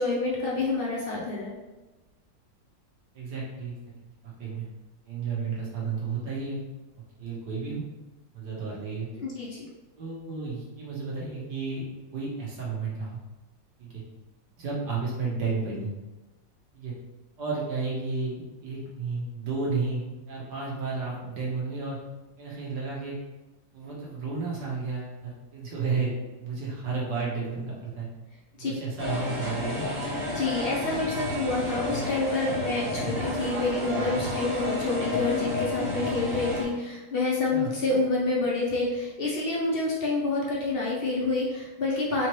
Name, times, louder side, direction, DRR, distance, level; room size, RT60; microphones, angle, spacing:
voice 1, 0.0-1.5 9.2-9.7 28.6-28.7 30.3-42.3, left 3 dB, 70° left, -4 dB, 0.5 m, -28 dB
voice 2, 3.1-3.7 4.2-4.7 5.0-6.6 7.2-7.8 8.3-9.1 10.0-11.8 12.1-13.2 13.8-14.0 14.6-15.9 16.7-16.9 17.4-22.0 22.4-23.1 23.7-26.1 26.4-28.1 28.6-29.9 32.9-33.2 37.5-37.7, right 4 dB, 65° right, -5 dB, 1.6 m, -32 dB
sound 1, 29.0-36.6, left 2 dB, 30° right, 1.2 m, -31 dB
4.2 x 3.0 x 3.1 m, 1.1 s
omnidirectional pair, 2.0 m